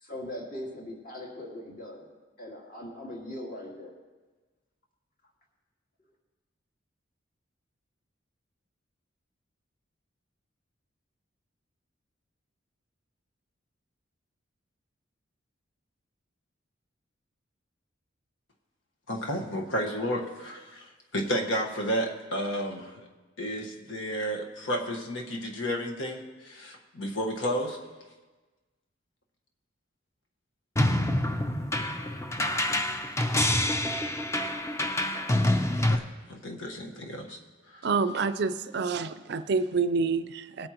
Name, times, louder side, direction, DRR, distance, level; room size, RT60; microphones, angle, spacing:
voice 1, 0.0-2.0 2.4-3.9, left 1 dB, 45° left, -1 dB, 2.0 m, -40 dB
voice 2, 19.1-23.0 23.4-27.8 32.5-32.8 35.7-37.4 37.7-37.9, equal, 80° left, 1 dB, 1.4 m, -32 dB
sound 1, 30.8-36.0, left 1 dB, 15° left, 0.5 m, -27 dB
voice 3, 37.8-40.7, right 4 dB, 60° right, 12 dB, 0.4 m, -28 dB
19.5 x 8.8 x 3.0 m, 1.3 s
head